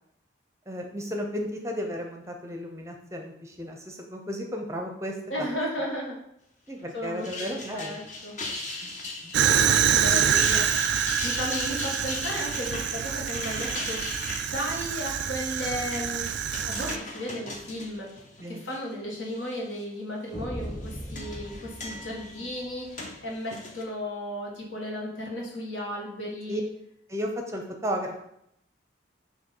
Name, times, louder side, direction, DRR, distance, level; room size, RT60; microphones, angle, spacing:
voice 1, 0.7-5.5 6.7-8.0 8.8-8.9 9.2-9.4 18.4-18.6 26.5-26.6 27.1-28.2, equal, 15° right, 3 dB, 0.6 m, -34 dB
voice 2, 5.3-6.2 6.9-8.4 9.9-10.7 11.2-14.2 14.5-16.3 16.6-18.1 18.5-26.6, equal, 85° left, -3 dB, 1.8 m, -34 dB
sound 1, 7.0-18.8 19.2-19.8 20.6-23.8, left 2 dB, 40° left, 0.9 m, -38 dB
Fire, 9.3-17.0, right 8 dB, 65° right, 0.3 m, -26 dB
sound 2, 20.3-22.9, right 1 dB, 15° left, 1.2 m, -39 dB
6.1 x 3.1 x 5.4 m, 0.77 s
head